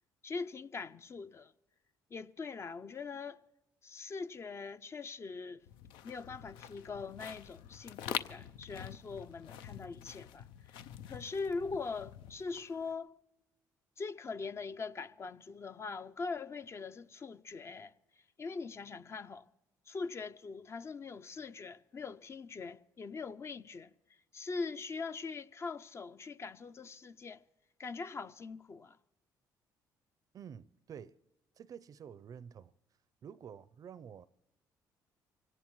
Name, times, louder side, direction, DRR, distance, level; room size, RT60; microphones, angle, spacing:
voice 1, 0.2-1.5 2.1-3.4 3.8-5.6 6.0-10.5 10.7-13.1 14.0-17.9 18.4-19.5 19.9-23.9 24.3-27.4 27.8-29.0, left 4 dB, 35° left, 0.5 m, -42 dB
sound 1, 5.7-12.9, left 10 dB, 85° left, 0.5 m, -46 dB
voice 2, 30.3-31.2 31.6-32.7 33.2-34.3, right 8 dB, 50° right, 0.5 m, -49 dB
24.5 x 17.5 x 3.1 m
supercardioid pair, 80°, 8 cm